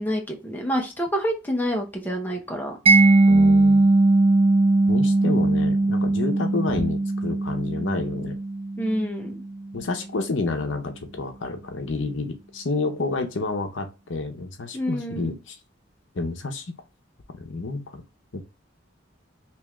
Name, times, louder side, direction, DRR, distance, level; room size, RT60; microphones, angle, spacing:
voice 1, 0.0-2.8 8.8-9.4 14.7-15.4, equal, 10° left, 1 dB, 0.7 m, -27 dB
Mallet percussion, 2.9-9.6, right 2 dB, 30° right, 0.4 m, -19 dB
voice 2, 3.3-3.9 4.9-8.4 9.7-15.6 16.1-16.6 17.4-18.0 18.3-18.4, left 3 dB, 70° left, 6 dB, 0.7 m, -29 dB
3.5 x 3.0 x 3.0 m, 0.28 s
head